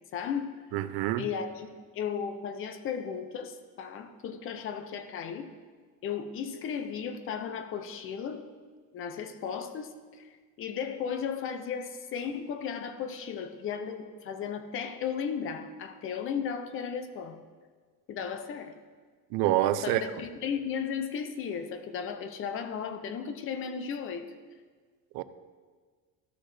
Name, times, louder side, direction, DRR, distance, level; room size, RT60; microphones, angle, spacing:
voice 1, 0.1-0.6 1.2-1.7 1.9-5.5 6.0-8.5 8.9-17.4 18.1-18.8 19.8-24.2, left 7 dB, 35° left, 9 dB, 0.5 m, -35 dB
voice 2, 0.7-1.2 19.3-20.0 25.1-25.2, right 14 dB, 80° right, 13 dB, 0.5 m, -26 dB
13.0 x 6.5 x 3.2 m, 1.5 s
cardioid pair, 180°, 37 cm